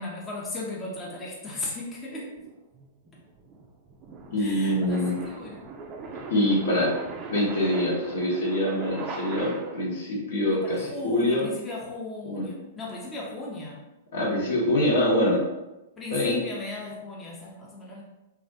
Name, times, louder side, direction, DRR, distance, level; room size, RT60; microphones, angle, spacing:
voice 1, 0.0-2.4 4.4-5.7 10.5-13.8 16.0-18.0, left 2 dB, 20° left, -4 dB, 0.5 m, -36 dB
sound 1, 2.4-10.0, right 3 dB, 35° right, 0.3 m, -39 dB
voice 2, 4.3-5.1 6.3-6.9 7.3-11.5 12.3-12.5 14.1-15.4 16.1-16.4, left 1 dB, 70° left, -4 dB, 1.0 m, -25 dB
2.4 x 2.0 x 2.6 m, 0.99 s
hypercardioid pair, 115°, 0 cm